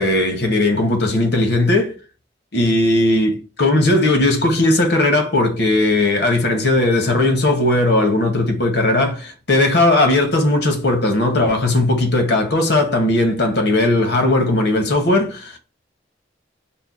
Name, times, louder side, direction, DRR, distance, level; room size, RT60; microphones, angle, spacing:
voice 1, 0.0-1.9 2.5-15.6, left 2 dB, 60° left, 0.8 m, -17 dB
5.4 x 2.1 x 2.4 m
head